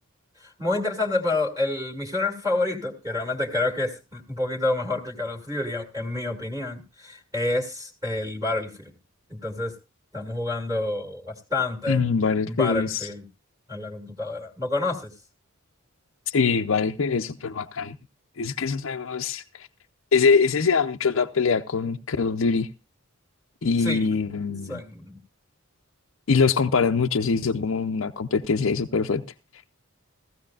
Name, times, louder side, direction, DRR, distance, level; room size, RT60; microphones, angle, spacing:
voice 1, 0.4-8.9 9.3-9.7 10.1-12.0 12.5-13.2 13.7-15.1 23.8-24.1 24.7-25.2, left 2 dB, 15° right, 2.1 m, -28 dB
voice 2, 11.9-13.1 16.3-18.0 18.4-19.7 20.1-22.7 23.6-24.8 26.3-29.2, left 5 dB, 65° left, 0.6 m, -23 dB
16.0 x 15.5 x 2.3 m
head